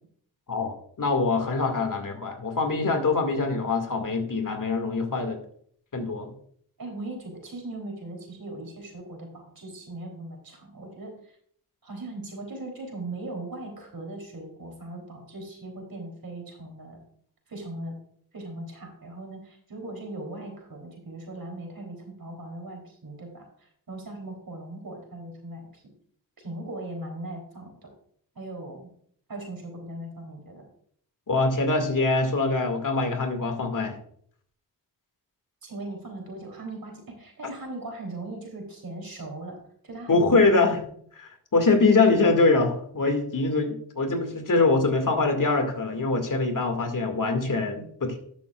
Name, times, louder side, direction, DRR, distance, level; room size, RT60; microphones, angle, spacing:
voice 1, 0.5-5.4 5.9-6.3 31.3-34.0 40.1-40.8 41.5-48.2, left 3 dB, 45° left, 4 dB, 2.2 m, -23 dB
voice 2, 6.8-11.3 11.8-17.0 17.5-18.0 18.3-25.8 26.4-27.7 28.3-28.9 29.3-30.6 35.6-39.6 39.8-40.6, right 2 dB, 50° right, 1 dB, 3.4 m, -39 dB
12.0 x 7.0 x 2.4 m, 0.62 s
supercardioid pair, 45°, 44 cm